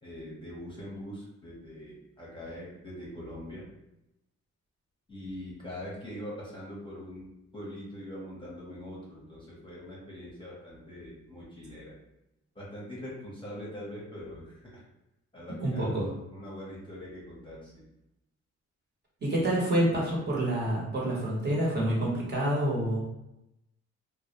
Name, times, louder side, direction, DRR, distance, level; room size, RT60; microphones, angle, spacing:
voice 1, 0.0-3.7 5.1-11.9 12.5-14.8 15.3-17.8, left 1 dB, 15° left, -6 dB, 0.8 m, -42 dB
voice 2, 15.6-16.1 19.2-23.0, right 1 dB, 35° right, -5 dB, 0.9 m, -27 dB
2.2 x 2.1 x 2.8 m, 0.89 s
cardioid pair, 90°, 30 cm